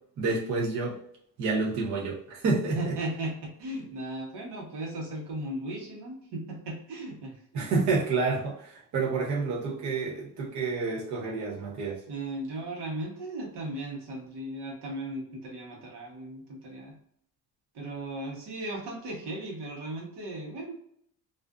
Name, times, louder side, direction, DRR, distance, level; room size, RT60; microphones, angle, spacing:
voice 1, 0.2-1.0 1.4-2.9 7.5-12.0, right 4 dB, 45° right, -3 dB, 0.6 m, -29 dB
voice 2, 2.7-7.4 12.1-17.0 17.7-20.7, right 1 dB, 75° right, -2 dB, 1.0 m, -36 dB
2.4 x 2.4 x 2.2 m, 0.67 s
cardioid pair, 160°, 41 cm